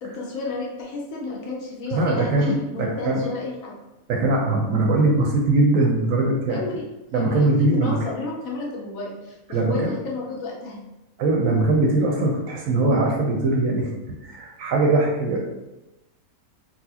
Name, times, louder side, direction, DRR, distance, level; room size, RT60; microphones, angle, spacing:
voice 1, 0.0-3.7 6.5-6.8 7.1-7.4 7.7-10.8, left 3 dB, 65° left, -2 dB, 1.0 m, -32 dB
voice 2, 1.9-3.3 4.1-6.6 7.1-8.1 9.5-9.9 11.2-13.9 14.2-15.4, right 2 dB, 70° right, -1 dB, 0.9 m, -21 dB
4.0 x 2.3 x 2.7 m, 0.98 s
omnidirectional pair, 1.6 m